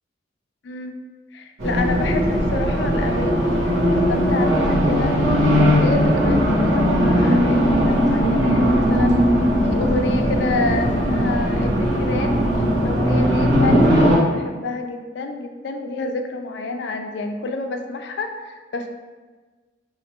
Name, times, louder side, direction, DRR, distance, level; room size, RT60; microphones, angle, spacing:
voice 1, 0.6-0.9 1.3-5.2 5.7-9.2 9.7-18.9, left 3 dB, 60° left, 5 dB, 0.3 m, -29 dB
Race car auto racing, 1.6-14.2, equal, 80° right, 0.8 m, -18 dB
4.2 x 2.4 x 2.9 m, 1.4 s
head